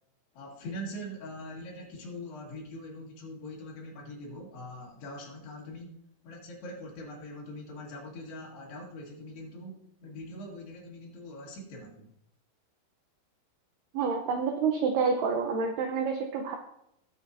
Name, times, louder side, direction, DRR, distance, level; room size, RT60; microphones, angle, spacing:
voice 1, 0.3-5.9 6.2-12.1, left 1 dB, 60° left, -3 dB, 3.8 m, -42 dB
voice 2, 13.9-16.6, right 5 dB, 80° right, 3 dB, 2.3 m, -28 dB
20.0 x 7.1 x 2.7 m, 0.78 s
omnidirectional pair, 5.7 m